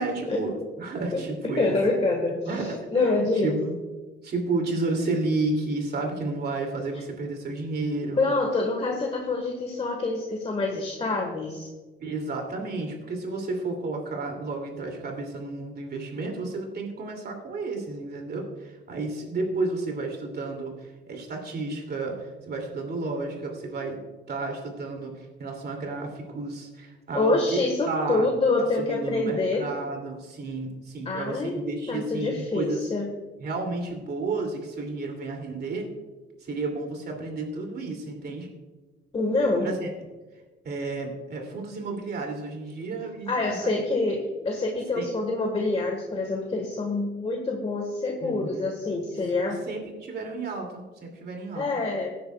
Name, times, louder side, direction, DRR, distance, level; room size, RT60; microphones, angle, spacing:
voice 1, 0.0-1.8 2.5-3.7 4.2-8.3 12.0-24.0 24.3-27.6 27.9-28.3 28.6-32.8 33.4-35.9 36.4-38.5 39.6-39.9 40.6-43.8 45.0-45.1 48.2-48.7 49.6-51.6, right 3 dB, 55° right, 2 dB, 2.7 m, -32 dB
voice 2, 1.6-3.6 8.2-11.7 27.1-29.7 31.0-33.1 39.1-39.7 43.3-49.6 51.5-52.1, left 2 dB, 30° left, 1 dB, 1.5 m, -26 dB
16.5 x 9.5 x 2.3 m, 1.3 s
cardioid pair, 90°, 20 cm